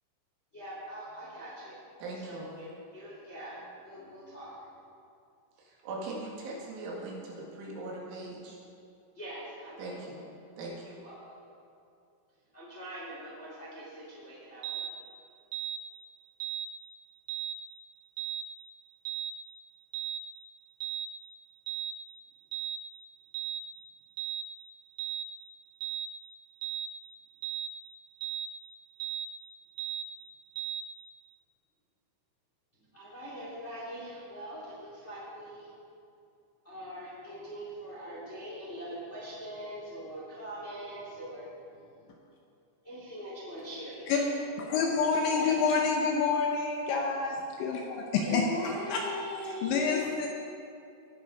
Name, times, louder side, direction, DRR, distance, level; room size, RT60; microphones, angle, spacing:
voice 1, 0.5-1.8 2.1-4.6 9.1-10.1 10.8-11.4 12.5-14.9 32.9-35.7 36.6-42.2 42.8-45.7 48.2-50.0, equal, 25° left, -7 dB, 1.5 m, -42 dB
voice 2, 2.0-2.5 5.6-8.6 9.8-10.2 10.6-11.0, right 2 dB, 70° right, -4 dB, 4.2 m, -40 dB
sound 1, 14.6-14.9 15.5-15.8 16.4-16.7 17.3-17.6 18.2-18.5 19.1-19.3 19.9-20.2 20.8-21.1 21.7-21.9 22.5-22.8 23.3-23.6 24.2-24.5 25.0-25.3 25.8-26.1 26.6-26.9 27.4-27.7 28.2-28.5 29.0-29.3 29.8-30.1 30.6-30.8, right 10 dB, 85° right, 3.5 m, -35 dB
voice 3, 44.7-48.4 48.9-49.0 49.6-50.3, left 5 dB, 75° left, 1 dB, 2.8 m, -28 dB
18.5 x 6.2 x 5.1 m, 2.6 s
omnidirectional pair, 5.9 m